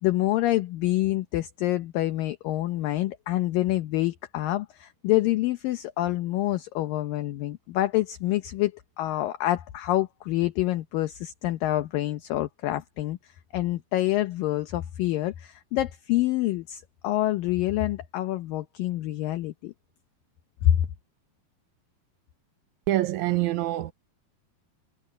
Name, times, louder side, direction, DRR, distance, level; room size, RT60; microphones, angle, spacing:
voice 1, 0.0-19.7 20.6-20.9, left 15 dB, 75° left, 2.4 m, -27 dB
voice 2, 22.9-23.9, right 15 dB, 85° right, 1.6 m, -25 dB
omnidirectional pair, 4.5 m